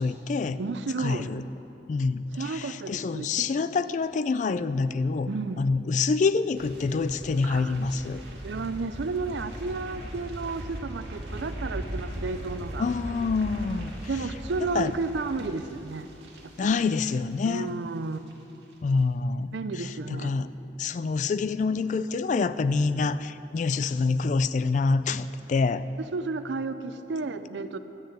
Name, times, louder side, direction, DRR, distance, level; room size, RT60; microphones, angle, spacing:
voice 1, 0.0-0.6 1.0-1.4 1.9-5.3 5.6-8.2 12.8-13.9 14.7-14.9 16.6-17.7 18.8-20.5 20.8-25.8, left 4 dB, 45° left, 14 dB, 0.3 m, -26 dB
voice 2, 0.6-1.3 2.3-3.7 5.3-5.7 7.4-7.7 8.3-12.8 14.1-16.1 16.6-16.7 17.5-18.2 19.5-20.3 26.1-27.8, right 3 dB, 85° right, 11 dB, 0.5 m, -32 dB
sound 1, 6.5-17.7 18.0-18.3 18.6-18.7, equal, 70° right, 1.9 m, -39 dB
12.0 x 6.5 x 8.1 m, 3.0 s
head